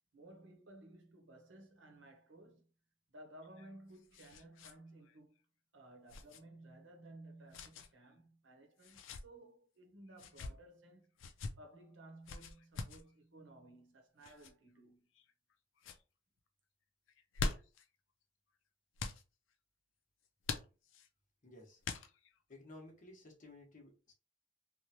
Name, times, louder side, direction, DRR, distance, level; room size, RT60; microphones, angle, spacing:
voice 1, 0.1-2.7 3.1-5.4 5.7-15.1, right 1 dB, 75° right, 0.8 m, -57 dB
sound 1, 3.4-4.8 5.0-5.2 6.1-6.4 7.5-7.9 8.8-9.2 10.1-10.5 11.2-11.5 12.3-13.0 14.2-14.5 15.1-15.5 15.8-16.0 17.1-17.8 19.0-19.2 20.4-21.1 21.8-22.4, left 4 dB, 85° left, 0.4 m, -43 dB
voice 2, 21.4-21.8 22.5-24.1, left 2 dB, 45° left, 0.9 m, -55 dB
3.1 x 2.1 x 2.7 m
head